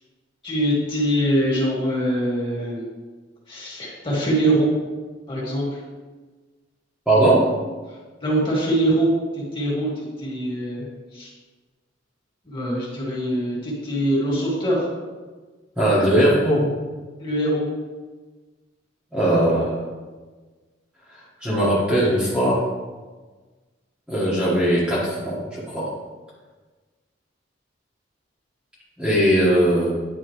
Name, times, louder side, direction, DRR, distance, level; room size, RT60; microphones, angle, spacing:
voice 1, 0.4-2.8 3.5-4.7 5.3-5.7 8.2-9.1 9.3-10.9 11.1-11.3 12.5-14.9 17.2-17.7, right 1 dB, 25° left, -5 dB, 2.1 m, -23 dB
voice 2, 7.1-7.5 15.8-16.7 19.1-19.8 21.1-22.6 24.1-25.9 29.0-29.9, right 1 dB, 5° right, -9 dB, 1.3 m, -19 dB
9.9 x 4.2 x 3.1 m, 1.3 s
head